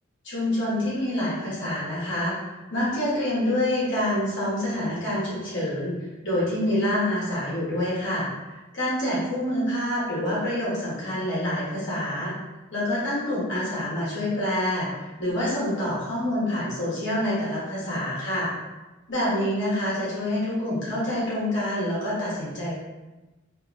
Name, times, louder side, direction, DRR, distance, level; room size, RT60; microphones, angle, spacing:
voice 1, 0.2-2.3 2.7-5.9 6.2-12.3 12.7-18.5 19.1-22.7, left 1 dB, 60° left, -8 dB, 1.2 m, -27 dB
2.8 x 2.7 x 2.5 m, 1.1 s
head